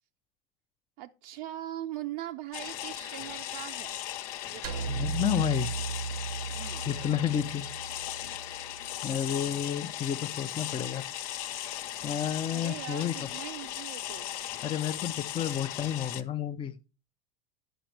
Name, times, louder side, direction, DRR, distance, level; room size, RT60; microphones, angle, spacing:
voice 1, 1.0-3.9 4.5-4.9 6.5-6.9 12.5-14.4, right 14 dB, 70° right, 0.6 m, -41 dB
sound 1, 2.5-16.2, left 12 dB, 70° left, 0.8 m, -38 dB
sound 2, 4.6-9.0, right 5 dB, 90° right, 1.0 m, -36 dB
voice 2, 4.9-5.7 6.9-7.7 9.0-11.1 11.5-13.1 14.6-16.7, left 10 dB, 25° left, 0.7 m, -31 dB
10.5 x 5.2 x 4.6 m
supercardioid pair, 115°, 19 cm